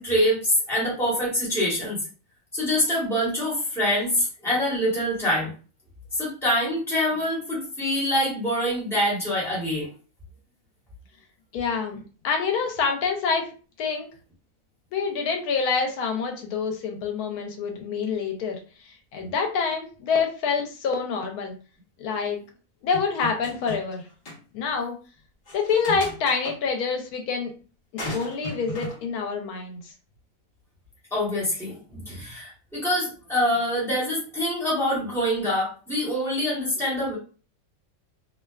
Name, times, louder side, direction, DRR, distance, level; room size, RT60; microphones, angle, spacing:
voice 1, 0.0-2.0 2.5-5.5 6.1-9.9 31.1-37.2, equal, ahead, -7 dB, 1.0 m, -25 dB
voice 2, 11.5-13.5 13.8-14.1 14.9-21.5 22.0-22.4 22.8-24.0 24.5-25.0 25.5-27.5 28.1-29.9, left 5 dB, 85° left, 3 dB, 1.1 m, -27 dB
sound 1, 22.9-24.0 24.3-24.4 25.5-26.6 28.0-29.0, left 2 dB, 40° left, 0.8 m, -36 dB
2.6 x 2.2 x 2.3 m, 0.37 s
omnidirectional pair, 1.6 m